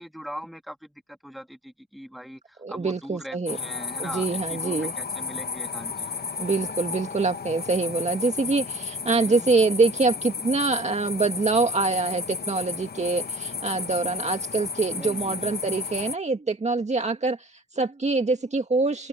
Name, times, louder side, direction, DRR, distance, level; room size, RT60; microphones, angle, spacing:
voice 1, 0.0-6.1 9.1-9.5 14.9-15.5, equal, ahead, 2.9 m, -41 dB
voice 2, 2.6-3.6 4.0-4.9 6.4-19.1, right 3 dB, 20° right, 1.9 m, -25 dB
sound 1, 3.5-16.1, left 5 dB, 35° left, 1.5 m, -33 dB
open air
cardioid pair, 90°, 30 cm